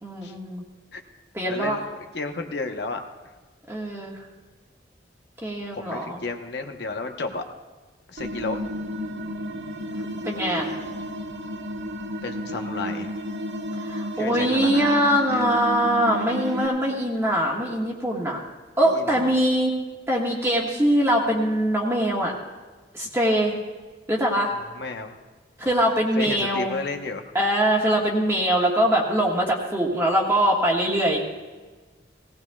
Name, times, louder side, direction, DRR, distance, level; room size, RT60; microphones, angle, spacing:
voice 1, 0.0-0.6 1.3-1.8 3.7-4.2 5.4-6.2 10.2-10.7 13.8-18.4 18.8-19.7 20.1-22.3 22.9-23.5 24.1-24.5 25.6-26.7 27.3-31.2, equal, 15° right, -3 dB, 1.5 m, -22 dB
voice 2, 1.5-1.8 2.1-3.0 5.7-7.4 8.1-8.6 12.2-13.1 14.1-14.9 15.3-15.5 18.8-19.3 24.7-25.1 26.1-27.2, left 3 dB, 60° left, 4 dB, 1.0 m, -32 dB
sound 1, 8.2-16.7, equal, 70° right, 1.2 m, -32 dB
18.0 x 18.0 x 2.3 m, 1.3 s
head